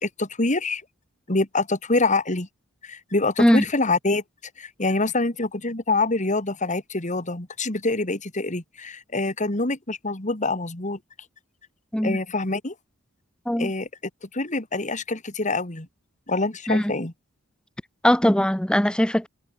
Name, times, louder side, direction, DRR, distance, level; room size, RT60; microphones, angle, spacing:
voice 1, 0.0-0.8 1.3-2.5 2.8-4.2 4.6-11.0 12.0-12.7 13.6-13.9 14.3-15.9 16.3-17.1, left 2 dB, 35° left, 2.6 m, -25 dB
voice 2, 18.0-19.3, equal, 5° left, 0.9 m, -20 dB
head